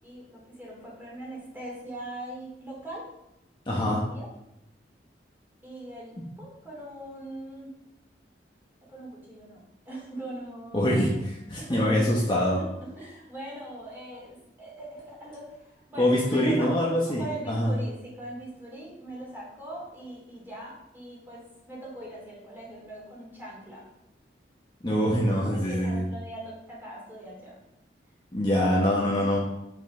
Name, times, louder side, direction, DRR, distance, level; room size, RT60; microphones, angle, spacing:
voice 1, 0.0-3.0 3.8-4.3 5.6-7.7 8.9-11.3 11.5-12.3 12.6-23.8 25.5-27.5 29.2-29.4, right 1 dB, 10° right, -5 dB, 2.6 m, -41 dB
voice 2, 3.7-4.0 10.7-11.1 11.5-12.6 16.0-17.7 24.8-26.0 28.3-29.4, equal, 25° left, -5 dB, 1.1 m, -24 dB
7.6 x 5.6 x 3.8 m, 0.87 s
head